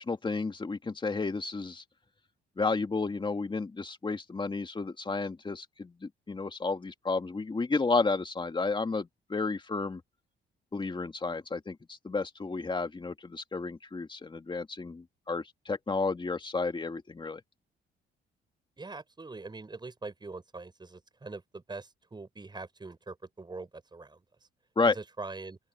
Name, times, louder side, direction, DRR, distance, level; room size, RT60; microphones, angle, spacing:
voice 1, 0.0-1.8 2.6-10.0 10.7-17.4 24.8-25.0, left 3 dB, 25° left, 2.2 m, -32 dB
voice 2, 18.8-24.2 24.9-25.6, right 3 dB, 20° right, 5.3 m, -43 dB
open air
cardioid pair, 90°, 20 cm